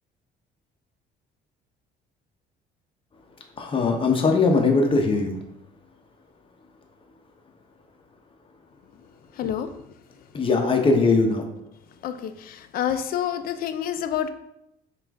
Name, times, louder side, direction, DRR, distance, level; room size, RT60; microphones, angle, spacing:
voice 1, 3.6-5.4 10.3-11.4, left 3 dB, 30° left, 3 dB, 0.7 m, -20 dB
voice 2, 9.4-9.7 12.0-14.3, left 10 dB, 60° left, 10 dB, 0.4 m, -28 dB
5.5 x 2.5 x 3.5 m, 0.83 s
cardioid pair, 110°, 17 cm